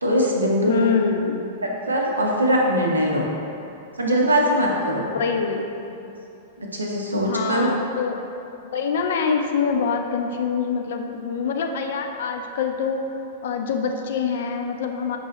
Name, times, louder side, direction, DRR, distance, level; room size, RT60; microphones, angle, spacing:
voice 1, 0.0-0.9 1.9-3.3 4.0-5.1 6.6-7.7, equal, 80° right, -1 dB, 0.6 m, -21 dB
voice 2, 0.7-1.4 5.1-5.9 7.2-8.2 8.6-13.0 13.4-15.2, left 6 dB, 60° left, 4 dB, 0.3 m, -25 dB
5.3 x 2.6 x 3.1 m, 2.8 s
figure-of-eight pair, 100°, 0 cm